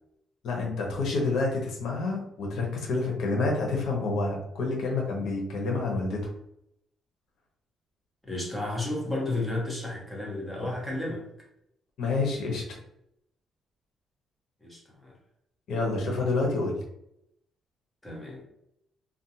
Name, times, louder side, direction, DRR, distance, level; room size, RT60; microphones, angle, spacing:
voice 1, 0.4-6.2 12.0-12.8 15.7-16.8, left 3 dB, 75° left, 0 dB, 0.8 m, -28 dB
voice 2, 8.3-11.3 14.6-15.1 18.0-18.4, left 2 dB, 5° left, -3 dB, 1.0 m, -32 dB
2.5 x 2.2 x 2.8 m, 0.77 s
cardioid pair, 90°, 0 cm